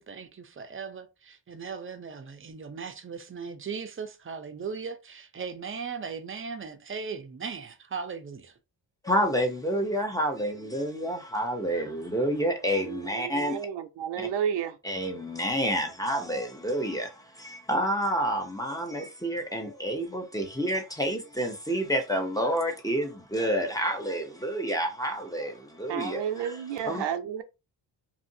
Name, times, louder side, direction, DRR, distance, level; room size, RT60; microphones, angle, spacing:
voice 1, 0.0-8.6, right 5 dB, 30° right, 0.6 m, -38 dB
voice 2, 9.0-13.7 14.2-14.3 14.8-27.0, equal, 10° left, 0.7 m, -29 dB
voice 3, 12.8-14.8 25.9-27.4, right 8 dB, 75° right, 0.6 m, -31 dB
2.7 x 2.5 x 2.7 m
cardioid pair, 80°, 43 cm